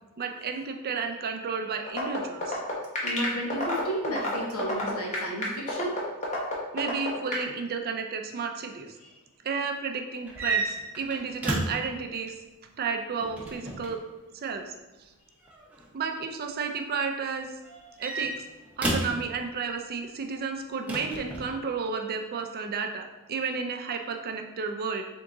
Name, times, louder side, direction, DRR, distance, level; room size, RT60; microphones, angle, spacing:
voice 1, 0.2-2.6 6.7-8.9 9.4-12.3 12.8-14.0 14.3-14.7 15.9-17.5 18.0-18.3 18.8-25.0, right 5 dB, 45° right, 4 dB, 0.4 m, -32 dB
sound 1, 1.9-7.4, left 1 dB, 35° left, 1.0 m, -29 dB
voice 2, 3.0-6.0 9.0-9.1, right 1 dB, 80° left, -2 dB, 1.2 m, -32 dB
sound 2, 10.3-11.9 13.2-14.0 15.4-15.8 17.6-19.2 20.9-21.5, right 2 dB, 5° right, 0.8 m, -31 dB
3.7 x 3.5 x 3.9 m, 1.1 s
head